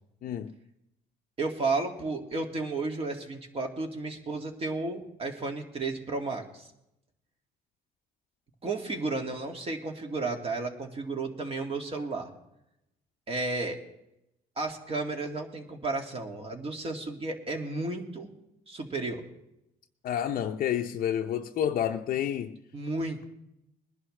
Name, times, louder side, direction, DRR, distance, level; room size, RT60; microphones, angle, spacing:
voice 1, 0.2-0.5 20.0-22.6, left 10 dB, 55° left, 0.7 m, -29 dB
voice 2, 1.4-6.7 8.6-12.3 13.3-13.8 14.6-18.3 18.7-19.2 22.7-23.3, right 3 dB, 35° right, 2.3 m, -33 dB
21.0 x 11.0 x 3.3 m
cardioid pair, 110°, 17 cm